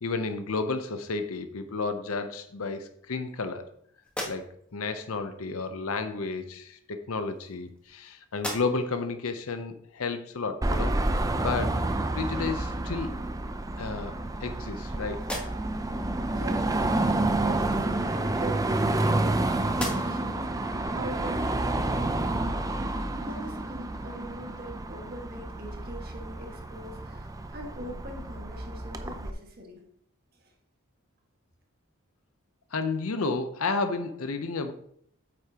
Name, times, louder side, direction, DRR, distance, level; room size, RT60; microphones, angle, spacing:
voice 1, 0.0-3.7 4.3-11.0 11.4-11.8 12.1-13.1 13.8-15.2 32.7-34.7, left 4 dB, 75° left, 8 dB, 0.7 m, -32 dB
sound 1, 4.0-4.9 6.0-6.2 7.1-8.0 8.3-9.0 9.5-9.6 12.3-12.4 12.8-13.5 14.1-14.8 15.2-15.9 17.9-19.3 19.7-20.4, left 1 dB, 5° left, 1.2 m, -40 dB
Car passing by / Traffic noise roadway noise / Engine, 10.6-29.3, right 2 dB, 15° right, 0.4 m, -29 dB
voice 2, 16.3-16.7 17.0-29.8 30.4-30.5, equal, 45° right, 0 dB, 1.7 m, -42 dB
8.5 x 8.1 x 2.9 m, 0.67 s
head